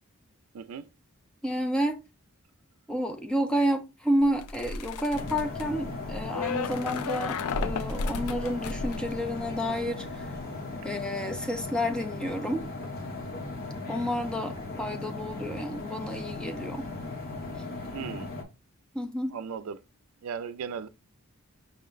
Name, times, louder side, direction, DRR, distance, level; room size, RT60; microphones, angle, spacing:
voice 1, 0.5-0.9 17.9-18.3 19.3-19.8 20.2-20.9, right 6 dB, 75° right, 0.4 m, -36 dB
voice 2, 1.4-2.0 2.9-10.3 10.8-12.6 13.9-16.9 18.9-19.4, equal, 5° left, 0.4 m, -30 dB
sound 1, 4.2-9.7 10.0-10.4, left 4 dB, 85° left, 0.4 m, -34 dB
sound 2, 5.1-18.4, left 2 dB, 45° left, 1.0 m, -37 dB
5.6 x 2.1 x 3.8 m
head